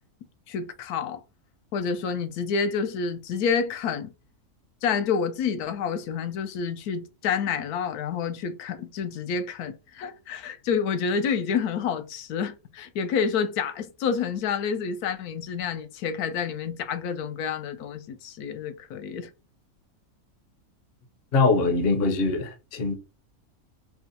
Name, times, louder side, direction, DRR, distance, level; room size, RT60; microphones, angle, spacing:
voice 1, 0.5-1.2 1.7-4.1 4.8-19.3, left 6 dB, 85° left, 1.1 m, -28 dB
voice 2, 21.3-22.9, left 3 dB, 50° left, 0.8 m, -23 dB
4.9 x 2.2 x 2.6 m
omnidirectional pair, 1.6 m